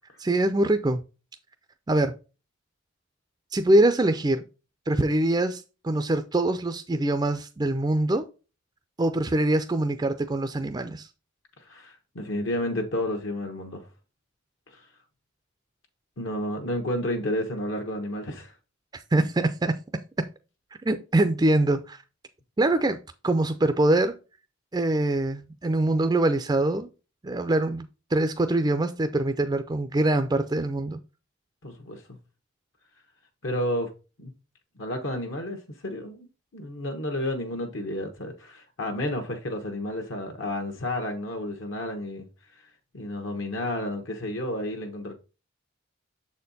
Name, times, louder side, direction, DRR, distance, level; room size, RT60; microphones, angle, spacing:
voice 1, 0.2-1.0 1.9-2.1 3.5-4.4 4.9-8.2 9.0-11.1 18.9-19.7 20.9-22.0 22.6-23.0 23.2-24.1 24.7-26.9 27.2-27.9 28.1-31.0, right 2 dB, 20° right, 0.4 m, -24 dB
voice 2, 11.6-13.9 14.7-14.9 16.2-18.5 31.6-32.0 33.4-33.9 34.2-34.3 34.8-36.3 36.5-42.3 42.9-45.1, left 1 dB, 70° left, 1.1 m, -31 dB
7.1 x 4.3 x 4.0 m
head